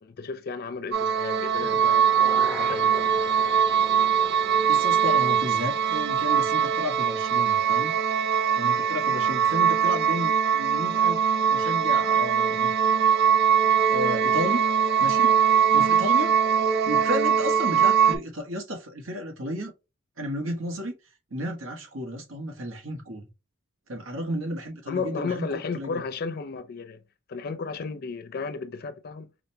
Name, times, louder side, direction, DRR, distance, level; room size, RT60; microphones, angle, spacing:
voice 1, 0.0-3.1 24.9-27.0 27.3-29.3, left 4 dB, 50° left, 0.4 m, -34 dB
sound 1, 0.9-18.2, right 7 dB, 50° right, 0.4 m, -22 dB
sound 2, 1.5-7.5 7.9-8.0, left 1 dB, 10° right, 0.8 m, -43 dB
voice 2, 4.7-8.0 8.6-11.2 11.5-12.7 13.8-14.6 15.0-15.3 15.7-16.4 16.8-19.7 20.2-20.9 21.3-23.3 23.9-25.5 25.7-26.0, equal, 80° right, 1.1 m, -32 dB
4.9 x 2.2 x 2.7 m
head